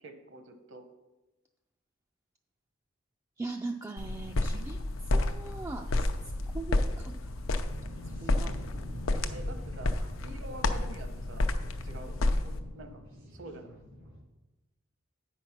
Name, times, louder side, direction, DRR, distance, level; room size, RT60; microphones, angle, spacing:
voice 1, 0.0-0.8 9.3-11.5 11.8-12.1 12.4-13.0 13.3-13.7, right 2 dB, 65° right, 7 dB, 0.9 m, -46 dB
voice 2, 3.4-4.8 5.1-6.1 6.5-7.3 8.2-8.5, right 3 dB, 15° right, 3 dB, 0.3 m, -40 dB
sound 1, 4.0-12.6, left 2 dB, 80° left, 0.6 m, -31 dB
sound 2, 7.6-14.2, equal, 90° right, 2.7 m, -46 dB
8.8 x 5.3 x 5.8 m, 1.1 s
head